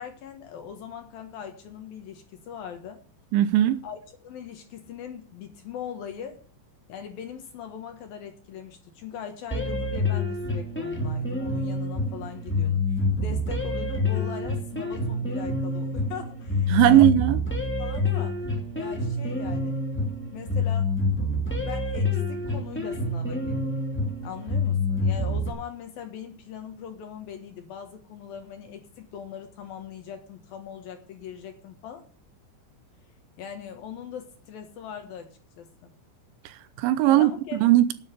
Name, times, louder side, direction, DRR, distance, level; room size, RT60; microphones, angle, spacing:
voice 1, 0.0-3.0 3.8-6.4 6.9-17.1 17.8-18.4 18.8-19.8 20.3-20.9 21.6-23.8 24.2-32.1 33.4-35.9 37.0-37.6, left 8 dB, 65° left, 2.4 m, -40 dB
voice 2, 3.3-3.8 16.7-17.4 36.5-37.9, right 13 dB, 80° right, 2.9 m, -19 dB
sound 1, 9.5-25.5, left 2 dB, 10° left, 0.6 m, -27 dB
10.5 x 9.5 x 6.6 m
omnidirectional pair, 5.9 m